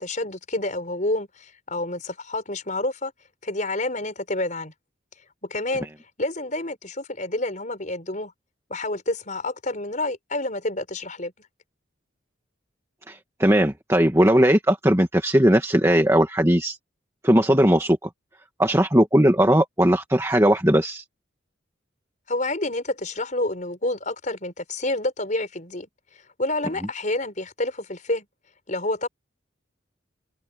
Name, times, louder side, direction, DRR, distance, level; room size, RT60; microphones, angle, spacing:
voice 1, 0.0-3.1 3.4-4.7 5.4-5.9 6.2-8.3 8.7-11.3 22.3-25.9 26.4-28.3 28.7-29.1, left 2 dB, 40° left, 5.5 m, -28 dB
voice 2, 13.1-16.8 17.2-18.0 18.6-21.0, right 1 dB, 15° right, 2.1 m, -18 dB
head